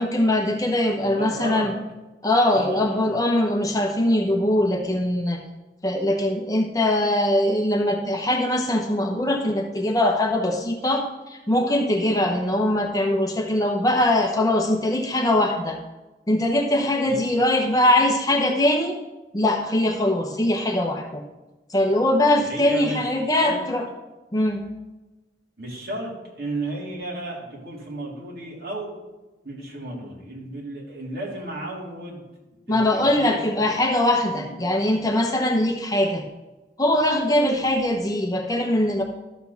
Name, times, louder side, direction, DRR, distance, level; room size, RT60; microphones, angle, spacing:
voice 1, 0.0-1.7 2.2-5.4 5.8-15.8 16.3-19.0 19.3-21.2 21.7-23.9 24.3-24.7 32.7-36.2 36.8-39.0, left 1 dB, 20° left, 2 dB, 0.8 m, -22 dB
voice 2, 1.0-1.7 2.5-3.1 17.0-17.2 22.4-23.1 23.4-23.6 25.6-28.9 29.4-32.2 32.7-33.4 34.3-34.5, right 1 dB, 60° right, -4 dB, 3.2 m, -33 dB
12.5 x 4.3 x 6.9 m, 1.1 s
head